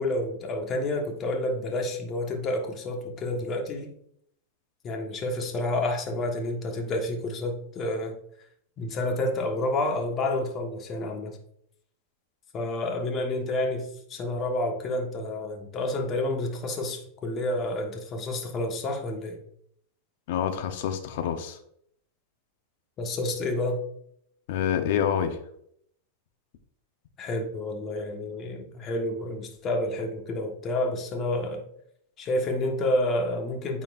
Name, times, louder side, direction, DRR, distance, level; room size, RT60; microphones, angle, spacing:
voice 1, 0.0-3.9 4.8-8.1 8.8-11.4 12.5-19.4 23.0-23.8 27.2-31.6 32.2-33.8, left 1 dB, 30° left, 2 dB, 1.4 m, -29 dB
voice 2, 20.3-21.6 24.5-25.4, left 8 dB, 65° left, 8 dB, 0.8 m, -27 dB
9.2 x 4.3 x 2.5 m, 0.69 s
hypercardioid pair, 120°, 0 cm